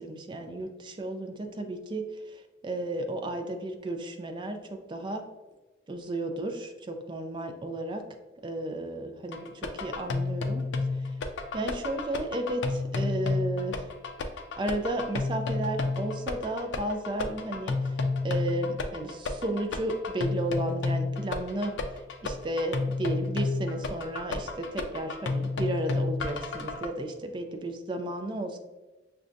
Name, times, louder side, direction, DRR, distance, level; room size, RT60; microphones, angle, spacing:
voice 1, 0.0-4.6 4.9-5.3 5.9-8.1 8.4-9.5 9.8-10.7 10.9-11.1 11.5-13.9 14.6-18.0 18.2-21.7 22.2-28.6, right 1 dB, 25° right, 5 dB, 0.3 m, -33 dB
sound 1, 9.3-26.9, left 3 dB, 75° left, 0.4 m, -31 dB
6.1 x 2.3 x 2.5 m, 1.2 s
head